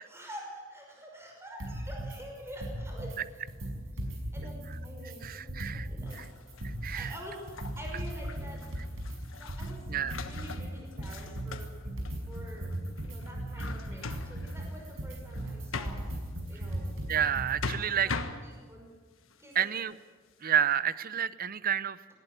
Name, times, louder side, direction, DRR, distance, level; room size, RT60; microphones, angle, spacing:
voice 1, 0.0-3.8 4.3-6.2 6.9-7.4 7.8-8.6 9.4-11.7 12.3-12.7 13.0-16.0 16.5-16.9 17.7-18.9 19.4-19.7, equal, 15° right, 0 dB, 5.6 m, -47 dB
sound 1, 1.6-2.2 2.5-3.2 3.5-6.2 6.5-17.6, right 1 dB, 85° right, 5.9 m, -38 dB
voice 2, 5.2-5.9 6.1-6.2 6.6-7.1 9.9-10.2 17.1-18.1 19.5-19.9 20.4-22.0, right 9 dB, 45° right, 16 dB, 0.7 m, -29 dB
sound 2, 6.1-17.0 17.3-18.8 19.3-20.0, left 3 dB, 85° left, 1.4 m, -43 dB
19.0 x 18.0 x 9.2 m, 1.5 s
head